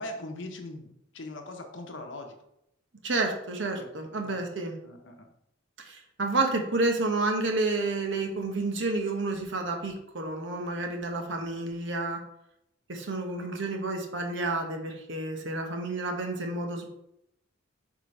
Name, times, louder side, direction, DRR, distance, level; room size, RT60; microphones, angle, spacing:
voice 1, 0.0-2.4 3.7-3.9 4.2-4.4 4.8-5.3, left 1 dB, 60° left, 4 dB, 0.9 m, -40 dB
voice 2, 3.0-4.8 5.8-12.2 12.9-16.9, right 2 dB, 60° right, 3 dB, 1.0 m, -30 dB
4.9 x 3.7 x 5.2 m, 0.79 s
head